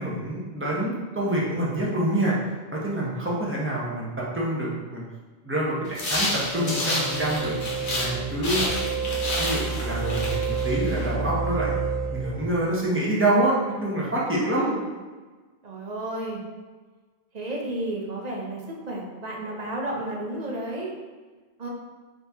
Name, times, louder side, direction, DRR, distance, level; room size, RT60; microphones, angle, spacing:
voice 1, 0.0-2.4 2.7-5.0 5.4-7.5 7.9-8.6 9.3-11.8 12.1-14.7, right 1 dB, 15° right, -6 dB, 0.8 m, -26 dB
sound 1, 5.9-8.1 8.4-11.0, left 1 dB, 85° left, 1.2 m, -29 dB
sound 2, 6.5-12.7, right 5 dB, 80° right, 0.8 m, -29 dB
voice 2, 8.7-9.2 14.4-14.8 15.6-16.4 17.3-20.9 21.6-21.7, right 1 dB, 45° right, -2 dB, 0.7 m, -32 dB
4.1 x 2.8 x 3.5 m, 1.4 s
omnidirectional pair, 1.1 m